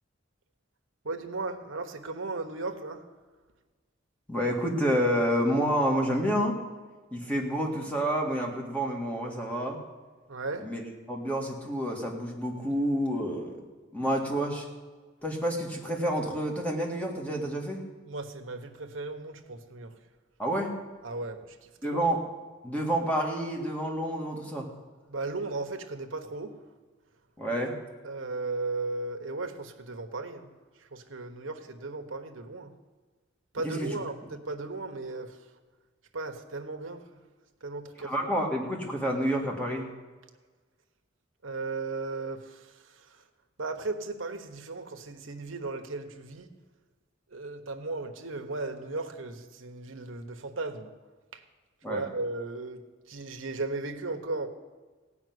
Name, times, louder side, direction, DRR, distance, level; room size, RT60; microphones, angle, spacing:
voice 1, 1.0-3.0 10.3-10.7 18.1-20.0 21.0-22.0 25.1-26.5 28.0-30.5 30.8-32.7 33.5-35.4 36.1-37.2 37.6-38.3 41.4-43.2 43.6-46.5 47.3-50.9 51.3-51.4 51.9-54.5, right 3 dB, 85° right, 5 dB, 1.2 m, -36 dB
voice 2, 4.3-6.6 7.1-9.8 10.6-13.6 13.9-14.7 15.2-17.8 20.4-20.7 21.8-22.2 22.6-24.7 27.4-27.7 33.6-33.9 38.0-39.9 51.8-52.0, equal, 5° left, 0 dB, 2.1 m, -29 dB
16.5 x 5.9 x 9.5 m, 1.4 s
head